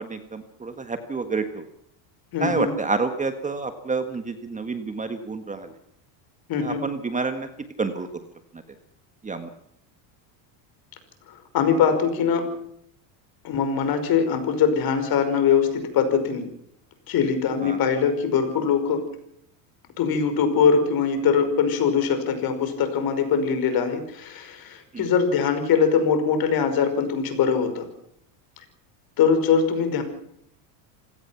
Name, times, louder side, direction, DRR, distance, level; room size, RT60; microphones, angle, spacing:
voice 1, 0.0-1.6 2.4-5.7 6.6-7.5 7.8-8.1 9.2-9.5 17.6-17.8 24.9-25.0, right 4 dB, 15° right, 8 dB, 1.6 m, -28 dB
voice 2, 2.3-2.7 6.5-6.8 11.5-12.5 13.4-16.5 17.1-19.0 20.0-27.9 29.2-30.0, left 6 dB, 45° left, 8 dB, 5.5 m, -22 dB
26.0 x 17.0 x 5.9 m, 0.70 s
supercardioid pair, 130°, 49 cm